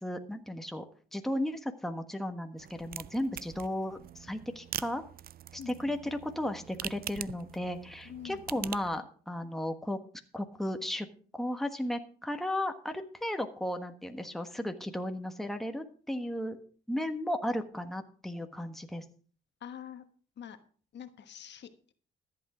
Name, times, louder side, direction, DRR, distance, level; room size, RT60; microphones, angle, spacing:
voice 1, 0.0-0.8 1.1-5.0 5.7-10.0 10.3-11.1 11.3-16.6 16.9-19.0, left 1 dB, ahead, 5 dB, 1.4 m, -35 dB
sound 1, 2.6-9.0, right 10 dB, 50° right, 0.4 m, -43 dB
voice 2, 8.0-8.4 19.6-20.0 20.4-20.6 20.9-21.9, left 9 dB, 60° left, 8 dB, 1.4 m, -45 dB
13.5 x 8.4 x 4.9 m, 0.43 s
cardioid pair, 90°, 20 cm